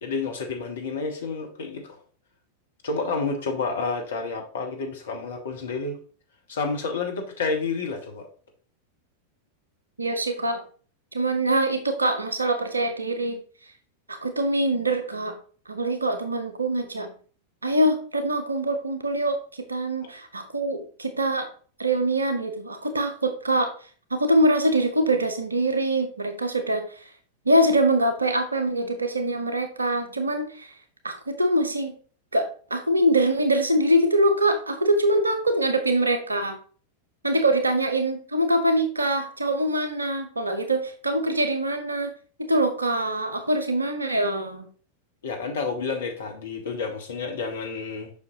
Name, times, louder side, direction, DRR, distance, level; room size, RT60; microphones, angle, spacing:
voice 1, 0.0-2.0 2.8-6.0 6.5-8.3 20.0-20.1 45.2-48.1, left 4 dB, 65° left, 3 dB, 1.5 m, -30 dB
voice 2, 10.0-10.6 11.1-13.4 14.1-15.3 15.7-17.1 17.6-21.5 21.8-23.7 24.1-27.1 27.5-30.7 31.0-31.9 32.3-36.6 37.2-42.1 42.5-44.7, right 1 dB, 80° right, 7 dB, 0.8 m, -24 dB
7.1 x 5.8 x 2.8 m, 0.42 s
figure-of-eight pair, 90°, 0 cm